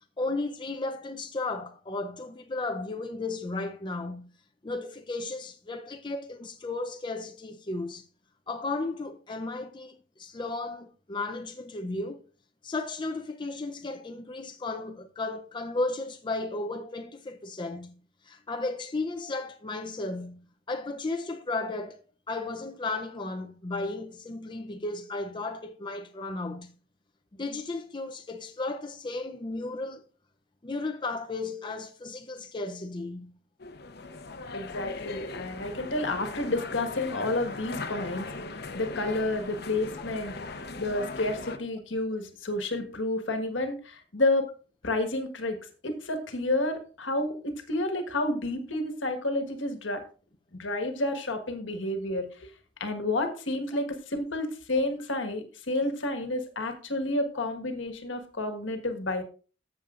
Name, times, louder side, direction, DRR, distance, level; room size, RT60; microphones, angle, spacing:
voice 1, 0.2-4.3 4.6-8.1 8.5-12.2 12.6-18.0 18.2-22.0 22.3-26.7 27.4-30.0 30.6-33.3 34.5-34.8, left 2 dB, 25° left, 0.6 m, -34 dB
sound 1, 33.6-41.6, left 3 dB, 60° left, 0.9 m, -39 dB
voice 2, 34.5-38.3 38.7-40.3 40.8-44.4 44.8-45.6 45.8-50.0 50.6-52.2 52.8-59.2, left 2 dB, 75° left, 1.5 m, -30 dB
14.0 x 7.2 x 2.5 m
head